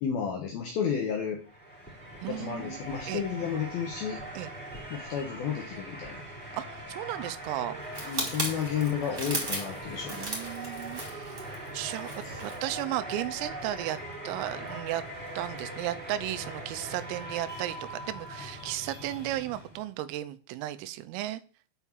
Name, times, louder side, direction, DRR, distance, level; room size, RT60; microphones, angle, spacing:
voice 1, 0.0-1.4 2.3-4.2 4.9-6.2 8.0-10.4 12.2-12.4, left 7 dB, 75° left, 1 dB, 2.2 m, -32 dB
sound 1, 1.4-19.9, right 1 dB, 5° left, 1.6 m, -41 dB
voice 2, 2.2-2.8 3.1-3.2 4.4-4.5 6.5-7.8 10.2-14.0 14.3-15.0 15.4-21.4, right 14 dB, 85° right, 11 dB, 3.4 m, -35 dB
sound 2, 7.9-12.7 13.0-13.3, right 2 dB, 20° right, 2.3 m, -36 dB
8.3 x 5.6 x 7.3 m, 0.40 s
omnidirectional pair, 5.9 m